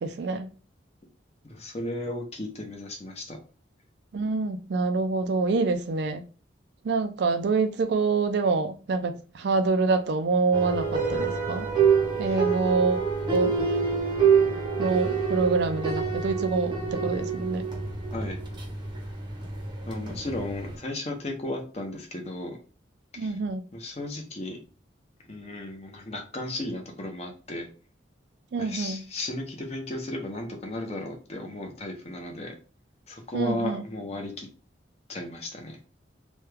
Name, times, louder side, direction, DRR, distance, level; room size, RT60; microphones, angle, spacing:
voice 1, 0.0-0.5 4.1-6.2 6.8-11.7 12.2-13.5 14.8-17.7 23.2-23.6 28.5-29.0 33.3-33.9, right 4 dB, 60° right, 0.4 m, -26 dB
voice 2, 1.5-3.4 12.2-12.4 18.1-18.4 19.9-22.6 23.1-23.3 23.7-24.6 25.3-27.7 28.6-32.5 33.1-34.5 35.1-35.8, left 1 dB, 35° left, 0.7 m, -35 dB
sound 1, 10.5-20.8, right 5 dB, 25° right, 0.7 m, -27 dB
3.1 x 2.3 x 3.3 m
head